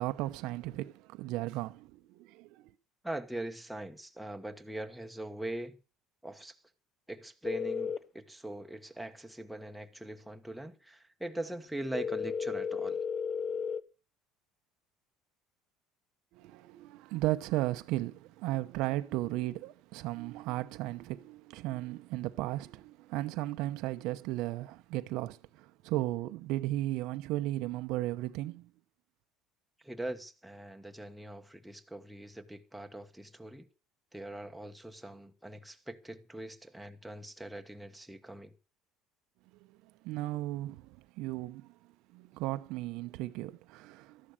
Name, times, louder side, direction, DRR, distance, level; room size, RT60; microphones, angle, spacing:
voice 1, 0.0-2.5 16.3-28.7 40.0-41.7 42.1-44.3, right 17 dB, 70° right, 0.8 m, -35 dB
voice 2, 3.0-5.8 6.2-6.6 7.1-13.0 29.8-33.7 34.1-38.5, right 1 dB, ahead, 1.2 m, -42 dB
sound 1, 7.4-8.0 11.9-13.8, left 6 dB, 30° left, 0.8 m, -33 dB
13.5 x 11.0 x 6.5 m
cardioid pair, 130°, 0 cm